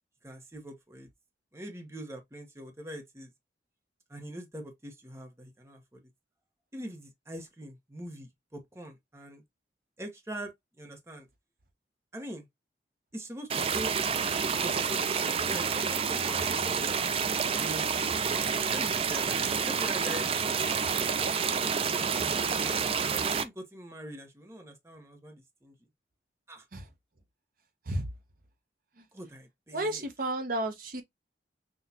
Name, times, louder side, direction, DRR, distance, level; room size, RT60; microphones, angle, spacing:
voice 1, 0.2-1.1 1.5-3.3 4.1-6.0 6.7-9.4 10.0-11.3 12.1-12.5 13.1-13.9 14.6-16.9 17.6-17.9 18.7-21.3 21.9-22.8 23.1-25.7 26.5-26.7 29.1-30.1, right 1 dB, 15° right, 0.9 m, -43 dB
sound 1, 13.5-23.4, right 6 dB, 30° right, 0.4 m, -29 dB
voice 2, 29.7-31.0, right 1 dB, 50° right, 0.8 m, -32 dB
5.9 x 2.4 x 2.7 m
head